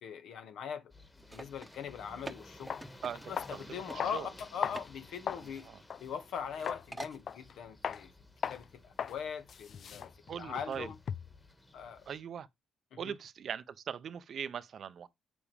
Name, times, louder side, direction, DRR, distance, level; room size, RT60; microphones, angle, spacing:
voice 1, 0.0-0.9 1.3-2.8 3.3-5.7 6.0-8.1 8.5-10.1 10.4-10.9 11.7-12.0 12.9-13.1, left 7 dB, 75° left, 1.6 m, -41 dB
sound 1, 0.9-12.2, left 1 dB, 20° left, 1.8 m, -56 dB
sound 2, 1.2-3.6 3.9-4.0 4.3-4.9 5.1-6.2 6.5-7.2, right 1 dB, 10° right, 1.0 m, -46 dB
sound 3, 2.1-2.2 2.7-2.9 3.4-3.6 4.0-5.5 5.9-6.0 6.7-6.9 7.3-7.5 7.8-8.0 8.4-8.6 9.0-9.2 9.5-11.4, left 7 dB, 55° left, 0.4 m, -38 dB
voice 2, 3.0-4.3 5.4-5.8 10.3-10.9 12.1-12.5 13.0-15.1, right 8 dB, 60° right, 0.6 m, -41 dB
8.3 x 7.0 x 3.4 m
cardioid pair, 90°, 0 cm